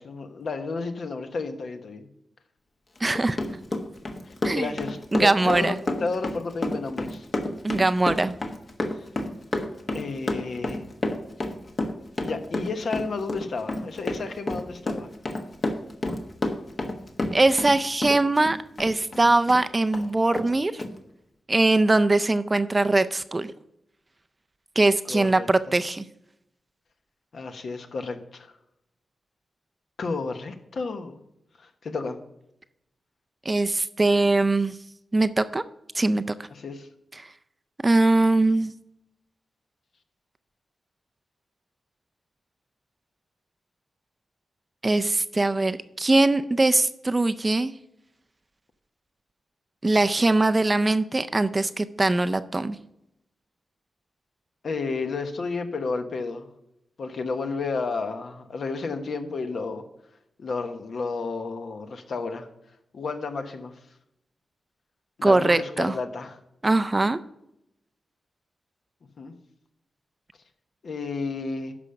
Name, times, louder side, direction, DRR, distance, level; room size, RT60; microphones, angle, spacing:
voice 1, 0.0-2.1 4.2-7.3 9.0-9.1 9.9-10.8 12.2-15.1 25.0-25.7 27.3-28.5 30.0-31.2 31.6-32.2 36.5-36.9 54.6-56.5 57.0-59.8 60.4-62.5 62.9-63.7 65.2-66.4 69.2-69.3 70.8-71.7, left 4 dB, 60° left, 6 dB, 1.1 m, -32 dB
Run, 3.0-17.8 18.0-19.6 19.9-20.1 20.3-20.5 20.8-20.9, left 2 dB, 40° left, 1.2 m, -29 dB
voice 2, 3.0-3.4 4.4-4.7 5.1-5.8 7.6-8.4 17.3-20.8 21.5-23.5 24.8-26.0 33.5-34.7 35.1-35.6 35.9-36.2 37.2-37.3 37.8-38.7 44.8-47.7 49.8-52.8 65.2-65.9 66.6-67.2, right 2 dB, 20° right, 12 dB, 0.4 m, -21 dB
12.5 x 5.1 x 5.7 m, 0.83 s
wide cardioid pair, 110°, 0 cm